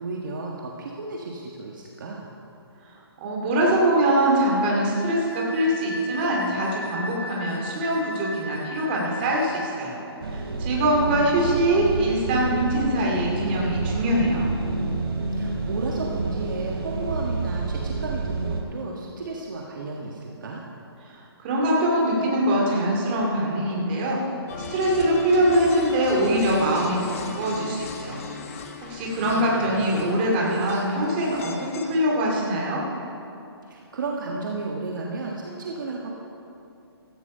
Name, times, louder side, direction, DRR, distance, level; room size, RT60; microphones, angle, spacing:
voice 1, 0.0-2.3 11.0-11.9 12.3-12.5 15.3-20.6 29.1-29.8 33.7-36.1, right 3 dB, 45° right, -1 dB, 1.5 m, -33 dB
voice 2, 2.8-14.5 21.1-24.2 24.7-28.2 28.8-32.8, right 1 dB, 20° right, -3 dB, 2.5 m, -23 dB
Wind instrument woodwind instrument, 4.9-9.7, left 1 dB, 60° left, 1.1 m, -37 dB
sound 1, 10.2-18.6, right 3 dB, 65° right, 2.9 m, -29 dB
sound 2, 24.5-32.0, left 4 dB, 30° left, 1.2 m, -38 dB
16.0 x 14.0 x 5.5 m, 2.7 s
hypercardioid pair, 175°, 14 cm